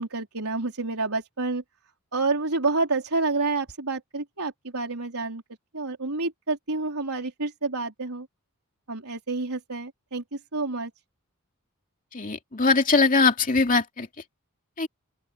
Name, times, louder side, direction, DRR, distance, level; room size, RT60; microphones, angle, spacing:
voice 1, 0.0-1.6 2.1-5.4 5.7-8.3 8.9-10.9, right 3 dB, 80° right, 4.0 m, -29 dB
voice 2, 12.1-14.1 14.8-14.9, left 4 dB, 40° left, 2.5 m, -21 dB
open air
head